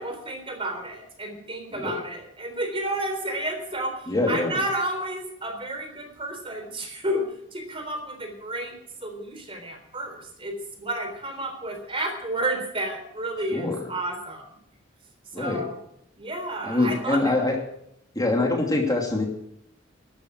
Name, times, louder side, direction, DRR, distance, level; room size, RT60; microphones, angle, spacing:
voice 1, 0.0-8.8 9.0-14.4 15.4-15.7 16.2-17.5, right 1 dB, 30° right, 4 dB, 3.7 m, -31 dB
voice 2, 4.1-4.6 13.5-13.9 15.3-15.6 16.6-17.6 18.1-19.3, left 2 dB, 20° left, 0 dB, 2.8 m, -24 dB
13.0 x 12.5 x 6.3 m, 0.74 s
head